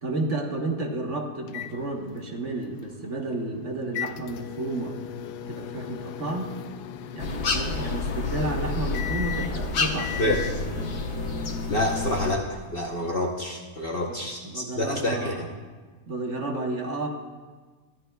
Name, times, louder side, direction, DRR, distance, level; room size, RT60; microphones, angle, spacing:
voice 1, 0.0-5.0 5.5-6.6 7.1-10.4 10.6-10.9 13.9-14.2 14.4-15.5 16.1-17.1, right 2 dB, 50° right, 2 dB, 1.4 m, -31 dB
sound 1, 1.5-10.6, left 9 dB, 90° left, 1.2 m, -38 dB
sound 2, 7.2-12.3, left 3 dB, 60° left, 1.4 m, -29 dB
voice 2, 11.7-15.3, left 1 dB, 45° left, 0 dB, 0.9 m, -28 dB
23.0 x 13.5 x 2.3 m, 1.4 s
omnidirectional pair, 1.7 m